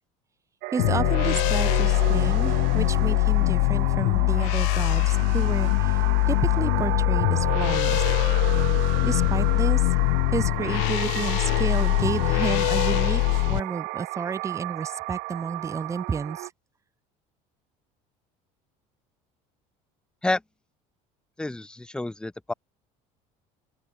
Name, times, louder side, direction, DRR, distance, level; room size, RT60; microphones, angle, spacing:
sound 1, 0.6-16.5, right 27 dB, 70° right, 0.8 m, -33 dB
voice 1, 0.7-8.0 9.0-9.9 10.3-16.5, right 5 dB, 20° right, 2.4 m, -31 dB
sound 2, 0.8-13.6, left 40 dB or more, 90° left, 1.1 m, -22 dB
voice 2, 21.4-22.5, left 2 dB, 5° left, 1.6 m, -29 dB
open air
cardioid pair, 150°, 15 cm